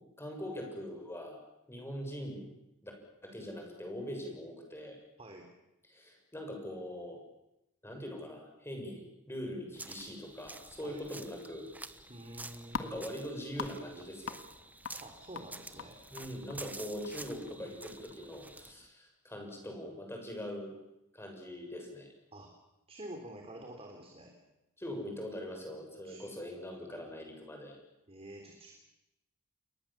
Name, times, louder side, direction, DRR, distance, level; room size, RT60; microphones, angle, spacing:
voice 1, 0.2-1.4 1.7-2.5 2.8-2.9 3.2-5.0 5.9-7.2 7.8-11.7 12.8-14.4 16.1-20.7 21.1-22.1 24.8-27.8, equal, 10° left, 2 dB, 7.0 m, -42 dB
voice 2, 5.2-5.5 10.8-11.0 12.1-13.0 15.0-16.0 17.6-17.7 22.3-22.5 22.9-24.3 26.0-26.3 28.1-28.7, right 1 dB, 30° right, 2 dB, 3.5 m, -48 dB
sound 1, 9.7-18.7, right 2 dB, 10° right, 1.1 m, -49 dB
sound 2, 12.1-18.9, left 5 dB, 65° left, 1.8 m, -46 dB
29.0 x 22.5 x 7.6 m, 0.89 s
head